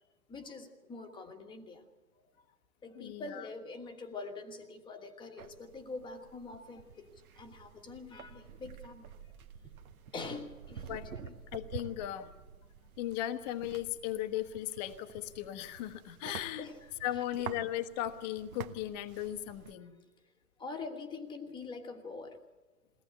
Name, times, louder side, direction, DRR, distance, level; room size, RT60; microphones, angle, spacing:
voice 1, 0.3-1.8 2.8-7.1 7.4-9.2 9.6-9.7 10.1-11.3 16.2-16.8 20.6-22.4, left 3 dB, 10° left, 6 dB, 1.4 m, -44 dB
voice 2, 2.9-3.5 10.9-11.1 11.5-12.3 13.0-16.7 17.0-20.0, left 13 dB, 25° left, 9 dB, 1.1 m, -37 dB
sound 1, 5.4-19.7, right 7 dB, 65° right, 1.7 m, -49 dB
22.0 x 18.0 x 8.2 m, 1.2 s
hypercardioid pair, 140°, 47 cm